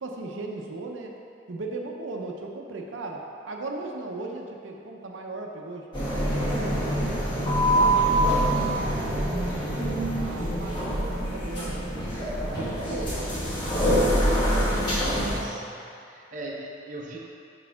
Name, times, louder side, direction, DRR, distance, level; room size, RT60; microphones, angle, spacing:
voice 1, 0.0-1.2 1.5-7.0 7.4-8.7 9.0-12.0 12.4-13.5, right 2 dB, 90° right, 1 dB, 0.6 m, -37 dB
sound 1, 5.9-15.4, right 1 dB, 25° left, 1.5 m, -25 dB
voice 2, 15.0-15.7 16.0-17.2, right 1 dB, 40° right, -2 dB, 0.6 m, -39 dB
5.4 x 4.2 x 5.6 m, 2.5 s
head